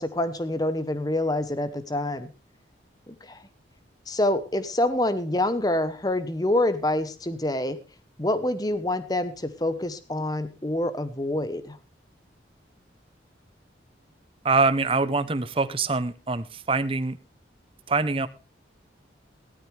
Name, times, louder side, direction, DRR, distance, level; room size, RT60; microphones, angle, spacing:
voice 1, 0.0-2.3 3.1-3.4 4.1-7.8 8.2-11.8, left 1 dB, 20° left, 13 dB, 1.0 m, -26 dB
voice 2, 14.4-17.2 17.9-18.3, right 3 dB, 30° right, 13 dB, 0.7 m, -24 dB
16.0 x 13.0 x 3.4 m, 0.30 s
head